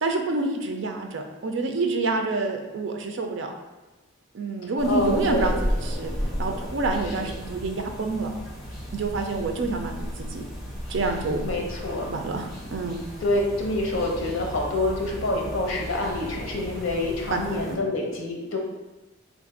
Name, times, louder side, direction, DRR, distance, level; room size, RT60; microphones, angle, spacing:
voice 1, 0.0-3.5 4.3-6.1 6.4-8.3 8.9-10.4 10.9-11.4 12.1-13.0 17.3-17.8, right 3 dB, 65° right, 3 dB, 0.5 m, -28 dB
sound 1, 4.8-17.8, equal, ahead, 1.0 m, -34 dB
voice 2, 4.9-5.5 7.2-7.3 11.4-12.1 13.2-18.6, left 2 dB, 80° left, 0 dB, 0.7 m, -27 dB
3.2 x 2.5 x 3.7 m, 1.2 s
head